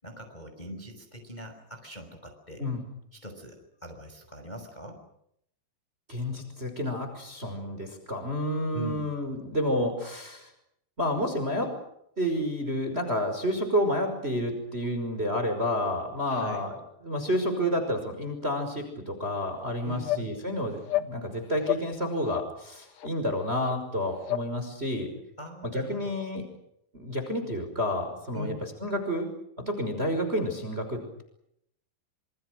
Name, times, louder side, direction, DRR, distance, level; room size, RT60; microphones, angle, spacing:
voice 1, 0.0-2.6 3.1-5.0 8.7-9.1 16.3-16.7 19.8-20.4 25.4-26.1 28.3-28.6, left 1 dB, 10° left, 5 dB, 5.4 m, -41 dB
voice 2, 6.1-10.5 11.0-11.7 12.2-16.8 17.0-25.1 25.7-26.5 26.9-28.5 28.8-29.3 29.6-31.2, equal, 15° right, 7 dB, 5.6 m, -30 dB
sound 1, 19.5-19.6 20.0-20.3 20.8-21.1 21.6-21.9 22.3-22.5 23.0-23.1 23.6-23.7 24.2-24.5, left 14 dB, 60° left, 1.9 m, -30 dB
28.5 x 27.5 x 6.5 m, 0.74 s
omnidirectional pair, 5.0 m